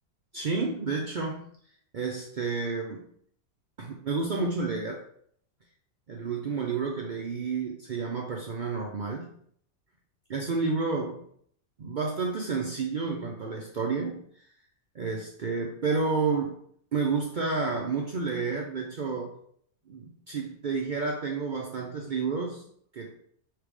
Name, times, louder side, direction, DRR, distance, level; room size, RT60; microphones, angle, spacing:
voice 1, 0.3-1.5 1.9-3.1 3.8-5.0 6.1-9.3 10.3-11.2 11.8-14.5 14.9-16.5 16.9-19.4 19.9-22.6 22.9-23.2, right 4 dB, 70° right, 0 dB, 0.4 m, -30 dB
3.4 x 3.3 x 4.8 m, 0.64 s
omnidirectional pair, 1.5 m